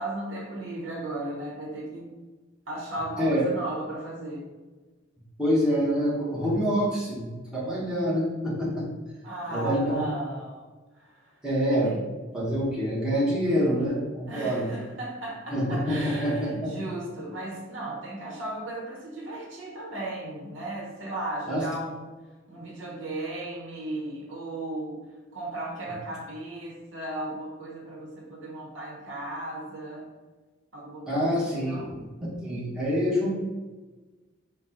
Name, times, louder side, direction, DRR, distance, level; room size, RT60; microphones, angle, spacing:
voice 1, 0.0-2.1 2.7-4.5 9.2-10.7 10.9-11.4 11.8-12.0 14.3-22.2 22.5-30.1 30.7-31.9, right 1 dB, 75° right, -2 dB, 0.9 m, -36 dB
voice 2, 5.4-8.9 9.5-10.0 11.4-11.9 12.3-14.7 15.5-16.7 21.5-21.6 31.1-32.0 32.4-33.3, equal, 5° right, -7 dB, 0.9 m, -26 dB
3.9 x 2.2 x 4.0 m, 1.2 s
head